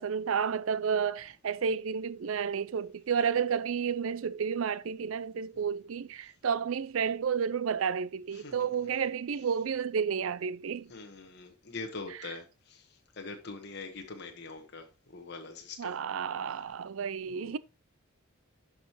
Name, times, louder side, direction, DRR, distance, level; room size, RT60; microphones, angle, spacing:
voice 1, 0.0-10.9 15.8-17.6, right 6 dB, 75° right, 0.5 m, -31 dB
voice 2, 8.3-8.9 10.9-16.0 17.3-17.6, left 3 dB, 55° left, 1.2 m, -44 dB
11.5 x 4.9 x 3.0 m
head